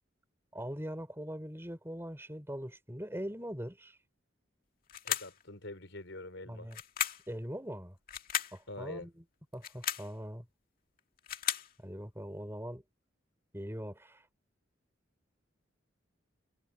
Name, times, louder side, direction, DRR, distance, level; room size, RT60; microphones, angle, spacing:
voice 1, 0.5-4.0 6.5-6.8 7.3-8.0 8.5-9.2 9.5-10.5 11.8-12.8 13.5-14.3, equal, 10° right, 4.6 m, -41 dB
sound 1, 4.9-5.4 6.7-7.3 8.1-8.6 9.5-10.1 11.0-11.7, left 10 dB, 45° left, 2.2 m, -35 dB
voice 2, 5.0-6.7 8.7-9.1, left 2 dB, 70° left, 4.8 m, -44 dB
head